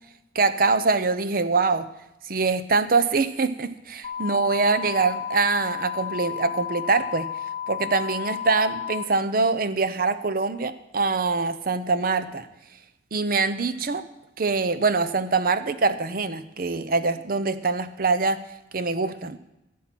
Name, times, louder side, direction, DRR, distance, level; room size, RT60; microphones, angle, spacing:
voice 1, 0.3-1.9 2.2-7.3 7.7-12.5 13.1-14.0 14.4-18.4 18.7-19.4, right 4 dB, 50° right, 13 dB, 0.7 m, -24 dB
sound 1, 4.0-9.0, left 9 dB, 35° left, 1.4 m, -32 dB
16.0 x 7.5 x 6.0 m, 0.91 s
head